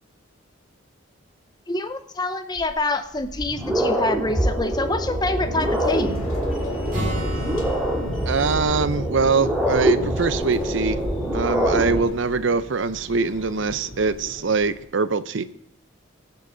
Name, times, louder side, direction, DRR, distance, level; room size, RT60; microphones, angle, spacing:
voice 1, 1.7-6.2, left 2 dB, 20° left, 10 dB, 0.6 m, -26 dB
sound 1, 2.6-2.7 3.2-12.0, equal, 5° right, 2.0 m, -24 dB
sound 2, 5.3-14.8, left 1 dB, 85° left, 2.6 m, -42 dB
Acoustic guitar, 6.9-10.6, equal, 40° right, 6.1 m, -35 dB
voice 2, 8.3-11.0 11.3-15.4, right 4 dB, 65° right, 14 dB, 0.6 m, -23 dB
20.5 x 6.9 x 3.9 m, 0.73 s
head